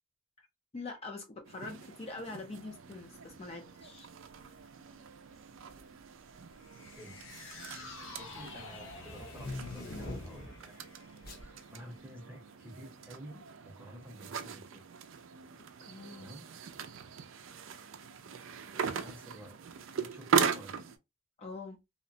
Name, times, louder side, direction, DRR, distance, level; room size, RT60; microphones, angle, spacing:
voice 1, 0.7-4.1 15.8-16.3 21.4-21.8, left 3 dB, 30° left, 0.5 m, -44 dB
sound 1, 1.5-21.0, right 6 dB, 70° right, 0.4 m, -39 dB
sound 2, 4.3-4.6 5.6-6.0 6.3-10.6 11.2-11.5, left 2 dB, 50° left, 0.8 m, -45 dB
sound 3, 6.6-13.0 13.4-13.5, left 3 dB, 85° left, 0.8 m, -51 dB
voice 2, 6.8-7.2 8.2-10.8 11.3-14.8 16.1-16.5 18.7-20.8, equal, 10° right, 0.7 m, -51 dB
2.8 x 2.1 x 2.6 m
head